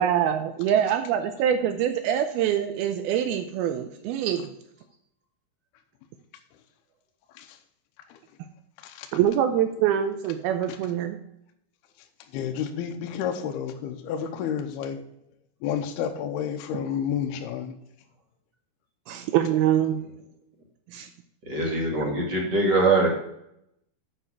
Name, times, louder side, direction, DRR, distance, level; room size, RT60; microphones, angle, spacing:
voice 1, 0.0-4.5 9.1-11.2 19.1-20.0 20.9-21.1, right 10 dB, 80° right, 8 dB, 2.3 m, -24 dB
voice 2, 8.8-9.2 10.7-10.8 12.3-15.0 15.6-17.7, left 8 dB, 80° left, 5 dB, 2.6 m, -30 dB
voice 3, 21.4-23.1, right 2 dB, 45° right, -1 dB, 1.5 m, -22 dB
8.4 x 5.6 x 6.0 m, 0.78 s
omnidirectional pair, 4.9 m